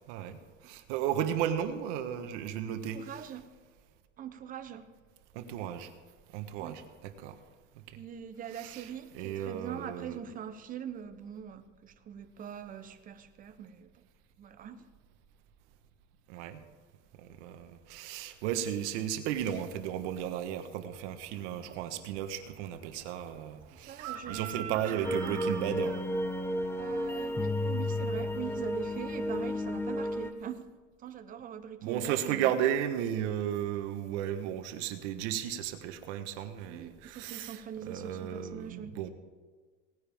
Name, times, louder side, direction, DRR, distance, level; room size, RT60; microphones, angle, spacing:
voice 1, 0.1-0.4 0.6-3.0 5.3-5.9 6.3-7.4 8.5-8.9 9.1-10.2 16.3-16.6 17.2-26.0 31.8-37.6 37.9-39.1, right 10 dB, 70° right, 8 dB, 1.3 m, -34 dB
voice 2, 2.9-3.5 4.2-4.9 6.6-6.8 8.0-13.9 14.4-14.9 23.9-25.4 26.8-30.7 31.0-32.5 36.7-39.0, right 8 dB, 25° right, 8 dB, 0.7 m, -43 dB
Chicken rooster, 21.2-29.5, right 9 dB, 45° right, 1.2 m, -47 dB
sound 1, 25.0-30.3, left 1 dB, 5° left, 0.4 m, -32 dB
18.5 x 9.6 x 3.5 m, 1.5 s
supercardioid pair, 150°, 36 cm